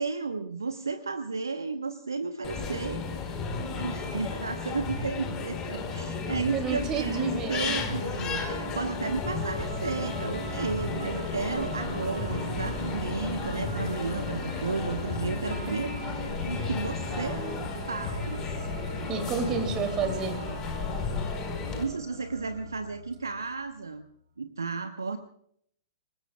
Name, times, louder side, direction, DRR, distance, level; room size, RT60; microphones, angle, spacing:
voice 1, 0.0-3.1 3.7-15.9 16.5-17.4 17.9-18.7 21.7-24.1 24.4-25.2, right 4 dB, 75° right, 8 dB, 1.1 m, -33 dB
sound 1, 2.4-21.8, left 4 dB, 25° left, 4.5 m, -34 dB
voice 2, 6.5-7.9 15.7-15.8 17.1-17.6 19.1-20.4, right 6 dB, 25° right, 7 dB, 2.9 m, -31 dB
sound 2, 7.5-23.7, right 1 dB, 60° right, 2.8 m, -40 dB
26.0 x 20.5 x 2.4 m, 0.67 s
figure-of-eight pair, 110°, 2 cm